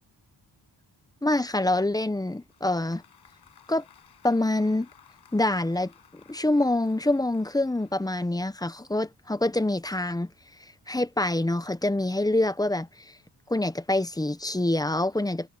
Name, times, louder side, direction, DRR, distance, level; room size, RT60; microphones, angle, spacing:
voice 1, 1.2-3.0 3.7-3.8 4.2-4.9 5.3-5.9 6.3-10.3 10.9-12.9 13.5-15.5, left 1 dB, 10° left, 0.8 m, -25 dB
Applause, 2.3-8.6, left 8 dB, 65° left, 5.7 m, -58 dB
wide cardioid pair, 135°, 42 cm